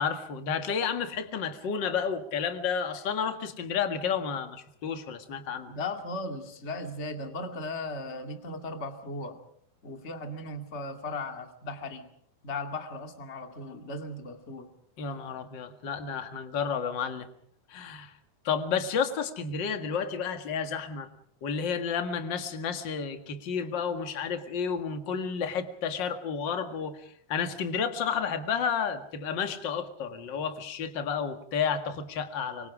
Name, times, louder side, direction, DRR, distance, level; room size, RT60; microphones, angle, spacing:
voice 1, 0.0-5.7 15.0-17.3 17.7-18.2 18.4-21.1 21.4-32.7, left 6 dB, 40° left, 7 dB, 1.7 m, -31 dB
voice 2, 5.7-9.4 9.8-12.1 12.4-14.7, left 2 dB, 25° left, 5 dB, 1.8 m, -37 dB
25.5 x 25.0 x 4.9 m, 0.66 s
omnidirectional pair, 4.4 m